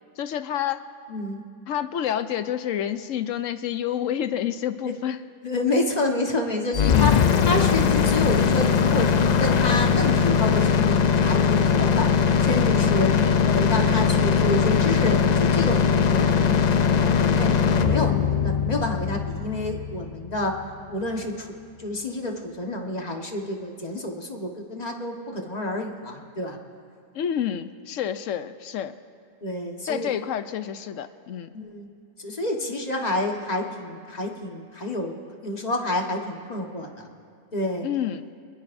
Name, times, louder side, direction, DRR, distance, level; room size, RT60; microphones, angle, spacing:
voice 1, 0.2-0.8 1.7-5.2 6.8-7.2 13.1-13.4 27.1-28.9 29.9-31.5 37.8-38.2, left 10 dB, 80° left, 11 dB, 1.1 m, -28 dB
voice 2, 1.1-1.4 5.4-7.1 7.4-12.1 12.4-13.1 13.5-16.5 16.9-20.5 20.9-21.5 21.8-26.6 29.4-30.1 31.5-31.9 32.2-35.1 35.4-37.1 37.5-37.9, left 2 dB, 30° left, 1 dB, 1.5 m, -28 dB
sound 1, 6.7-20.7, left 6 dB, 60° left, 0.4 m, -20 dB
26.0 x 21.0 x 2.7 m, 2.4 s
omnidirectional pair, 1.3 m